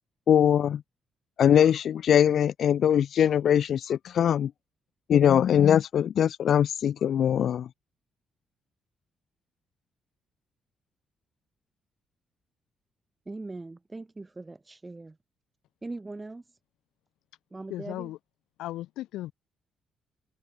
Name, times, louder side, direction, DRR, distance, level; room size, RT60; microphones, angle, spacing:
voice 1, 0.3-0.8 1.4-4.5 5.1-7.7, left 9 dB, 65° left, 0.3 m, -22 dB
voice 2, 13.3-15.2 15.8-16.4 17.5-18.1, right 2 dB, 20° right, 4.1 m, -40 dB
voice 3, 17.7-18.2 18.6-19.3, left 15 dB, 90° left, 4.1 m, -36 dB
cardioid pair, 90°, 0 cm